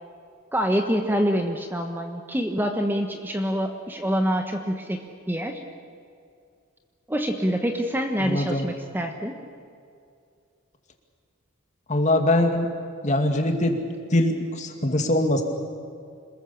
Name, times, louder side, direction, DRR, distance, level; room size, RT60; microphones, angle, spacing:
voice 1, 0.5-5.6 7.1-9.4, equal, 10° right, 4 dB, 1.2 m, -26 dB
voice 2, 8.2-8.7 11.9-12.7 13.0-13.8 14.1-15.4, left 1 dB, 35° left, 4 dB, 2.3 m, -22 dB
27.0 x 21.0 x 7.1 m, 2.3 s
head